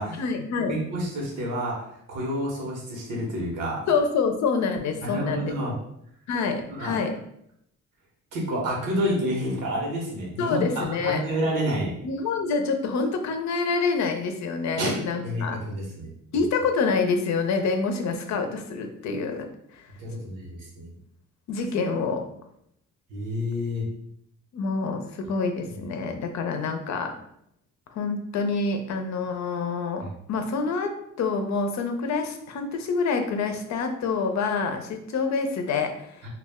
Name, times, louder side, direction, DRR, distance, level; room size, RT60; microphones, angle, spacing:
voice 1, 0.2-0.7 3.9-5.5 6.3-7.1 10.4-11.2 12.0-15.6 16.3-19.5 19.7-19.8 21.5-22.2 24.5-27.1 27.9-30.9 31.2-36.3, left 4 dB, 65° left, 5 dB, 0.5 m, -27 dB
voice 2, 0.7-3.8 5.0-5.7 6.7-6.9 8.3-11.9 14.8-16.1 20.0-20.9 23.1-23.9, equal, 90° right, -2 dB, 1.0 m, -29 dB
2.3 x 2.2 x 3.4 m, 0.74 s
cardioid pair, 90°, 30 cm